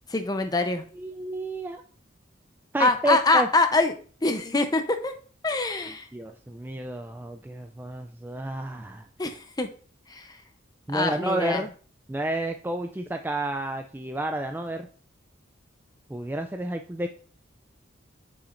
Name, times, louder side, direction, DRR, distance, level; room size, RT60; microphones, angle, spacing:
voice 1, 0.1-0.9 2.8-3.9 4.2-5.1 5.4-6.1 9.2-9.7 10.1-10.3 10.9-11.6, left 3 dB, 20° left, 7 dB, 0.7 m, -24 dB
voice 2, 1.0-1.8 2.7-3.5 6.1-9.1 10.9-11.7 12.1-14.9 16.1-17.1, right 1 dB, 10° right, 5 dB, 0.3 m, -30 dB
8.4 x 5.8 x 2.5 m, 0.42 s
head